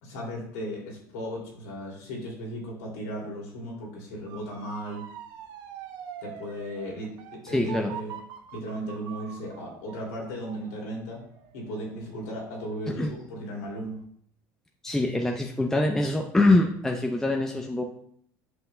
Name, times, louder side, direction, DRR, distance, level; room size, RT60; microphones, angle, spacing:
voice 1, 0.0-5.0 6.2-8.2 8.5-11.2 11.5-14.0, equal, 90° left, -2 dB, 2.5 m, -36 dB
Motor vehicle (road) / Siren, 4.3-13.2 13.6-14.0, right 9 dB, 70° right, 0.7 m, -44 dB
voice 2, 7.4-7.9 12.9-13.1 14.8-17.8, left 2 dB, 5° left, 2 dB, 0.5 m, -24 dB
7.7 x 5.7 x 2.2 m, 0.66 s
supercardioid pair, 110°, 8 cm